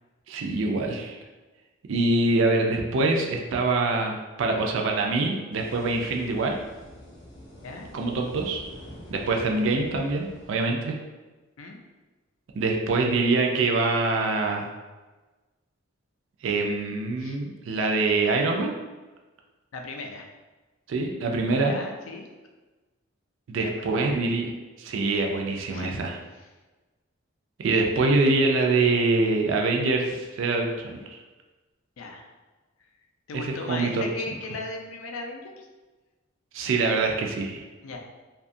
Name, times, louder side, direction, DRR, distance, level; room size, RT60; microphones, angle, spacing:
voice 1, 0.3-1.2 1.9-6.6 7.9-8.6 9.1-11.0 12.6-14.7 16.4-18.7 20.9-21.7 23.5-24.5 24.8-26.1 27.6-31.2 33.3-34.0 36.5-37.7, right 3 dB, 65° right, 2 dB, 0.3 m, -24 dB
sound 1, 5.5-10.6, equal, 20° left, 0.5 m, -45 dB
voice 2, 19.7-20.3 21.7-22.3 23.6-24.2 25.7-25.9 32.0-32.3 33.3-35.7 37.8-38.0, left 3 dB, 75° left, 3 dB, 0.4 m, -37 dB
2.7 x 2.3 x 2.5 m, 1.2 s
head